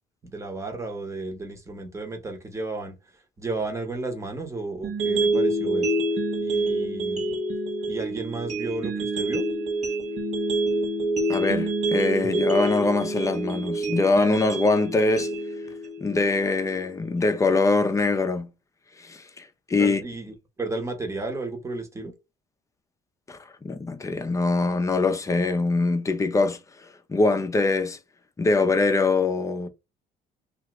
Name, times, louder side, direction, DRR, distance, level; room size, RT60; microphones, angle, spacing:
voice 1, 0.2-3.0 3.4-5.9 6.4-7.4 7.9-9.4 19.8-22.1, right 2 dB, 15° right, 0.9 m, -33 dB
sound 1, 4.8-16.9, right 2 dB, 45° right, 0.9 m, -27 dB
voice 2, 11.3-15.3 16.0-18.5 19.0-20.0 23.3-26.6 27.1-28.0 28.4-29.7, left 3 dB, 20° left, 0.5 m, -23 dB
2.7 x 2.5 x 3.0 m
cardioid pair, 110°, 17 cm